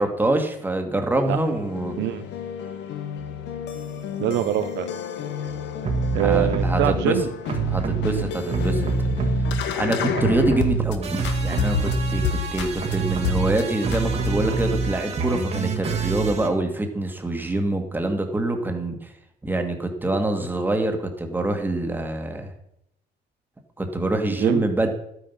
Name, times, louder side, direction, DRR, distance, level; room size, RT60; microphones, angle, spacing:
voice 1, 0.0-2.0 6.2-7.2 7.7-8.9 9.8-19.1 19.4-22.5 23.8-24.9, right 2 dB, 10° right, 5 dB, 1.7 m, -25 dB
sound 1, 1.2-11.0 11.2-13.0 13.2-13.6 13.9-14.7, left 9 dB, 85° left, 1.4 m, -31 dB
voice 2, 2.0-2.3 4.2-4.9 6.1-7.3 24.4-24.7, right 13 dB, 85° right, 9 dB, 0.7 m, -24 dB
sound 2, 5.8-7.0 7.5-9.9 10.1-16.5, right 4 dB, 35° right, 1.7 m, -25 dB
12.0 x 9.2 x 5.6 m, 0.78 s
cardioid pair, 145°, 18 cm